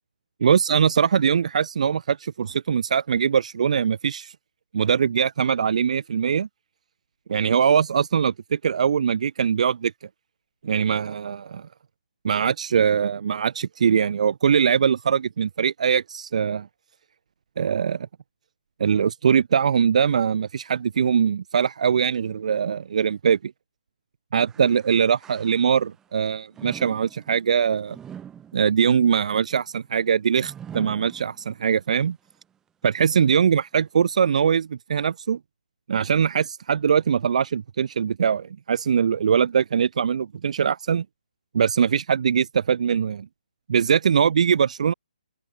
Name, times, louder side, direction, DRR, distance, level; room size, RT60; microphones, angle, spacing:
voice 1, 0.4-4.3 4.7-6.5 7.3-9.9 10.6-11.7 12.2-16.7 17.6-18.1 18.8-23.5 24.3-28.0 28.5-32.2 32.8-35.4 35.9-41.0 41.5-43.3 43.7-44.9, right 7 dB, 50° right, 1.6 m, -22 dB
sound 1, 24.5-26.0 26.5-31.8 32.3-32.4 33.2-33.3, right 9 dB, 10° right, 7.7 m, -44 dB
open air
figure-of-eight pair, 150°, 5 cm